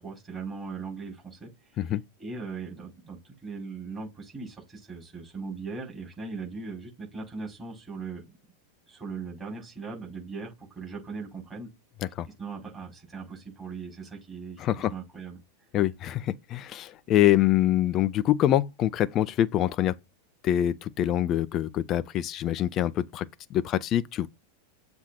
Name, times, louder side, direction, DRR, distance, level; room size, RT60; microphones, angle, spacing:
voice 1, 0.0-1.5 1.8-1.9 2.2-8.4 8.9-11.7 12.4-15.4, right 4 dB, 15° right, 5.1 m, -39 dB
voice 2, 14.6-14.9 15.7-19.9 20.4-24.3, left 12 dB, 35° left, 0.5 m, -25 dB
7.4 x 3.4 x 4.3 m
figure-of-eight pair, 90°, 0 cm